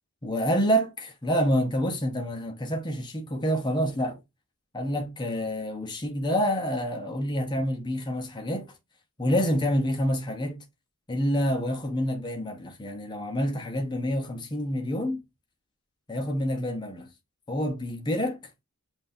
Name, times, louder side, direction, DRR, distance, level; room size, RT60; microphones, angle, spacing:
voice 1, 0.2-4.2 4.7-8.7 9.2-10.6 11.1-15.2 16.1-17.1 17.5-18.4, equal, 20° left, 0.8 m, -27 dB
7.6 x 2.6 x 2.7 m
head